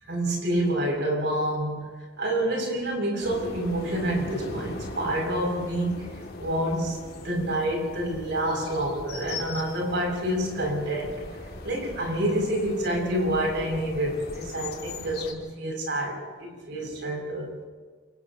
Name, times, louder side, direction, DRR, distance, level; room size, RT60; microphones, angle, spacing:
voice 1, 0.1-1.9 2.2-6.1 6.4-11.2 11.6-17.5, right 1 dB, 60° right, -1 dB, 7.3 m, -28 dB
sound 1, 3.2-15.3, left 2 dB, 50° left, 2.7 m, -40 dB
30.0 x 29.0 x 3.1 m, 1.5 s
head